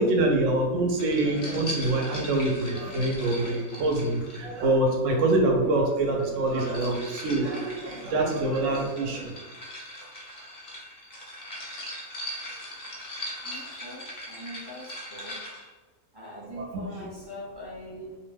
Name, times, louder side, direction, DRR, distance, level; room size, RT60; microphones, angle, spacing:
voice 1, 0.0-9.3 16.5-17.0, right 2 dB, 75° right, 1 dB, 0.9 m, -25 dB
sound 1, 1.0-4.9 6.2-15.7, equal, 40° left, 0.6 m, -40 dB
voice 2, 13.4-15.4 16.1-18.2, equal, 25° right, -7 dB, 0.6 m, -42 dB
2.6 x 2.1 x 3.2 m, 1.3 s
omnidirectional pair, 1.4 m